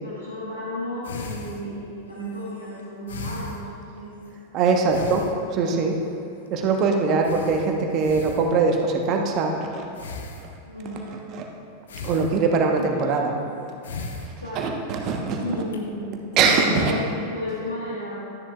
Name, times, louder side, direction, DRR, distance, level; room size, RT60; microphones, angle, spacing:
voice 1, 0.0-4.2 10.6-11.2 12.7-13.1 14.4-14.7 15.4-16.2 16.5-18.2, left 1 dB, 85° left, -8 dB, 1.5 m, -33 dB
sound 1, 1.0-4.4 4.9-5.9 6.3-6.5 6.7-6.8 7.2-8.9 10.0-10.9 11.9-12.9 13.5-15.0 15.5-15.8, left 3 dB, 65° left, 0.8 m, -38 dB
voice 2, 4.5-5.2 5.5-5.9 6.5-9.8 11.4-11.5 12.0-13.4 14.5-15.5 16.4-16.9, right 4 dB, 35° right, 2 dB, 1.1 m, -22 dB
13.0 x 10.0 x 2.4 m, 2.5 s
figure-of-eight pair, 90°, 0 cm